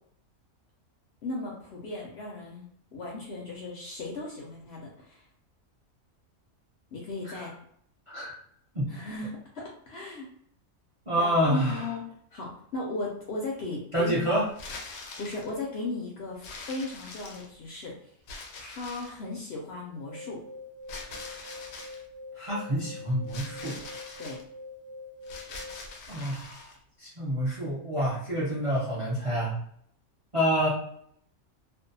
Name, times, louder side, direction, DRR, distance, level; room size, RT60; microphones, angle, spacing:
voice 1, 1.2-2.6 2.9-5.2 6.9-7.5 8.9-10.3 11.2-12.1 12.3-14.5 15.2-17.9 18.6-20.4 24.2-24.4, left 2 dB, 65° left, -2 dB, 0.7 m, -36 dB
voice 2, 11.1-11.8 13.9-14.5 22.4-23.8 26.1-26.7 27.0-29.5 30.3-30.7, equal, 40° right, -6 dB, 0.5 m, -27 dB
sound 1, 14.5-15.5 16.4-17.7 18.3-19.2 20.9-22.0 23.3-24.4 25.2-26.8, left 3 dB, 80° left, 1.0 m, -43 dB
sound 2, 19.9-25.9, left 2 dB, 65° right, 1.0 m, -44 dB
2.6 x 2.1 x 2.6 m, 0.67 s
omnidirectional pair, 1.4 m